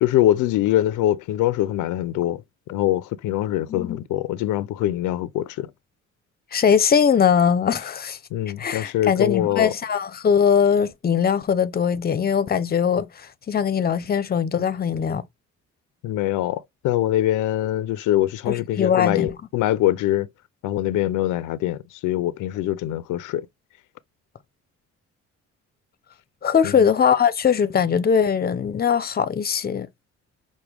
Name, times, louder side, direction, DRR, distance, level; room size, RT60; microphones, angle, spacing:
voice 1, 0.0-2.4 2.7-5.7 8.3-9.7 16.0-20.3 20.6-23.5 26.6-26.9, left 13 dB, 85° left, 0.5 m, -23 dB
voice 2, 3.7-4.0 6.5-8.2 8.6-15.2 18.5-19.3 26.4-29.9, left 7 dB, 30° left, 0.6 m, -21 dB
6.0 x 2.2 x 3.4 m
cardioid pair, 90°, 30 cm